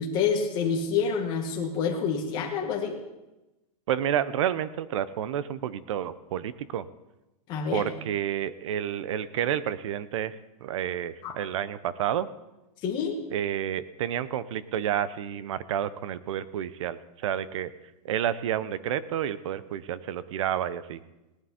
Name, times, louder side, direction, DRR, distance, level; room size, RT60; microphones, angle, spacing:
voice 1, 0.0-3.0 7.5-7.8 11.2-11.3 12.8-13.2, left 6 dB, 25° left, 0 dB, 1.7 m, -27 dB
voice 2, 3.9-6.9 7.7-12.3 13.3-17.7 18.0-21.0, right 10 dB, 55° right, 16 dB, 0.7 m, -30 dB
17.5 x 11.0 x 4.3 m, 1.0 s
supercardioid pair, 175°, 19 cm